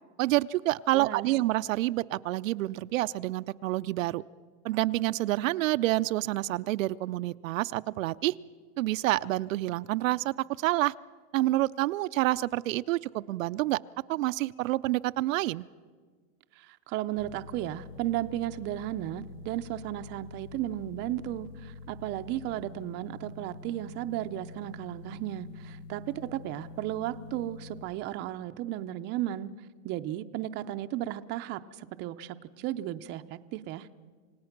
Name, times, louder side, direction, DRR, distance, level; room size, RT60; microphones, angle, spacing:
voice 1, 0.2-4.2 4.6-8.3 8.8-10.9 11.3-13.8 14.1-15.6, right 17 dB, 75° right, 13 dB, 0.6 m, -28 dB
voice 2, 0.9-1.3 16.6-29.5 29.8-33.9, right 13 dB, 30° right, 9 dB, 0.6 m, -34 dB
sound 1, 17.2-27.8, left 4 dB, 75° left, 1.7 m, -46 dB
28.0 x 17.5 x 5.9 m, 1.5 s
supercardioid pair, 145°, 39 cm